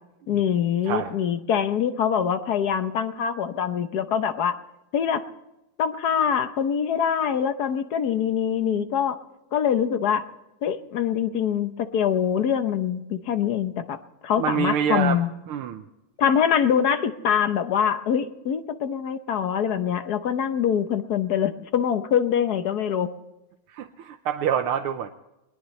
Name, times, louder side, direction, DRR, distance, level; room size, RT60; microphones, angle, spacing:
voice 1, 0.3-4.6 4.9-5.2 5.8-9.2 9.5-10.2 10.6-14.0 14.2-15.3 16.2-23.1, left 8 dB, 55° left, 10 dB, 1.2 m, -24 dB
voice 2, 14.4-15.2 15.5-15.8 23.7-25.1, right 8 dB, 85° right, 6 dB, 1.7 m, -26 dB
21.0 x 20.5 x 3.2 m, 0.95 s
omnidirectional pair, 2.4 m